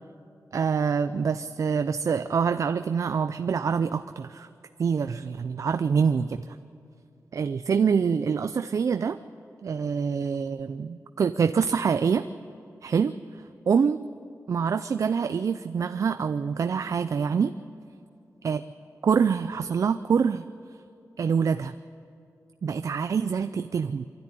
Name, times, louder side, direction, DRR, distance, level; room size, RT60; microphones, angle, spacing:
voice 1, 0.5-4.5 4.8-6.4 7.3-9.2 9.6-12.3 12.8-13.1 13.7-14.0 14.5-17.5 18.4-18.6 19.0-20.4 21.2-21.7 22.6-24.1, right 6 dB, 55° right, 10 dB, 0.4 m, -25 dB
24.0 x 13.0 x 9.9 m, 2.5 s
wide cardioid pair, 150°, 6 cm